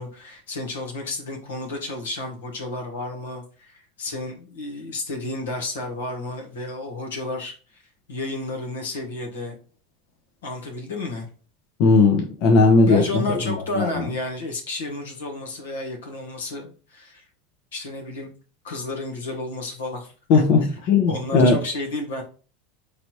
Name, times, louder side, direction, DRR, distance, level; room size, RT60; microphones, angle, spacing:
voice 1, 0.0-7.8 8.1-9.6 10.4-11.3 12.8-17.2 17.7-18.3 18.6-20.8 21.1-22.2, left 2 dB, 85° left, 2 dB, 1.2 m, -32 dB
voice 2, 11.8-13.0 13.3-13.4 13.8-13.9 20.3-20.6 20.9-21.6, left 4 dB, 60° left, 1 dB, 0.8 m, -16 dB
4.0 x 3.3 x 3.0 m, 0.38 s
hypercardioid pair, 90°, 0 cm